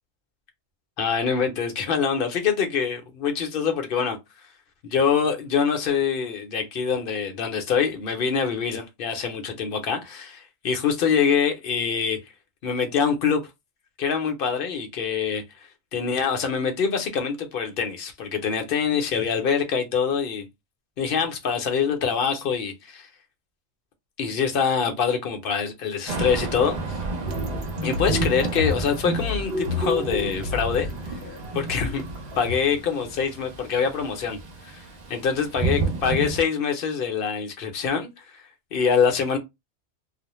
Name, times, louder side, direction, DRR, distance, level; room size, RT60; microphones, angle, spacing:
voice 1, 1.0-4.2 4.8-12.2 12.6-13.4 14.0-15.4 15.9-20.5 21.0-23.1 24.2-26.8 27.8-30.9 31.5-32.0 32.4-34.4 34.7-34.8 35.1-39.4, left 6 dB, 60° left, 0.8 m, -25 dB
Thunder / Rain, 26.1-36.4, right 3 dB, 50° right, 0.6 m, -31 dB
sound 1, 27.3-32.6, left 3 dB, 65° right, 0.9 m, -31 dB
2.4 x 2.1 x 3.0 m
omnidirectional pair, 1.2 m